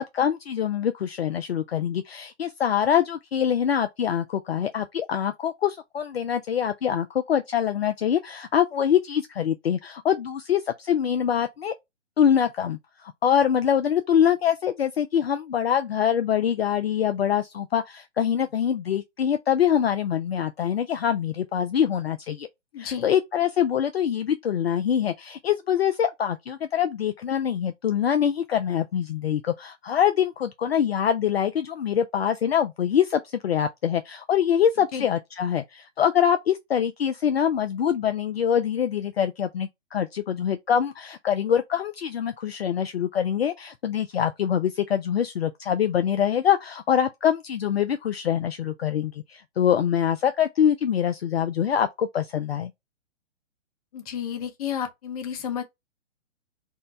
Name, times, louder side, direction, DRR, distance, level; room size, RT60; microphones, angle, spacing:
voice 1, 0.0-11.7 12.2-22.5 22.8-52.7, left 9 dB, 55° left, 0.5 m, -24 dB
voice 2, 22.7-23.1 34.9-35.1 53.9-55.6, left 8 dB, 30° left, 0.8 m, -31 dB
4.4 x 2.1 x 3.2 m
figure-of-eight pair, 125°, 37 cm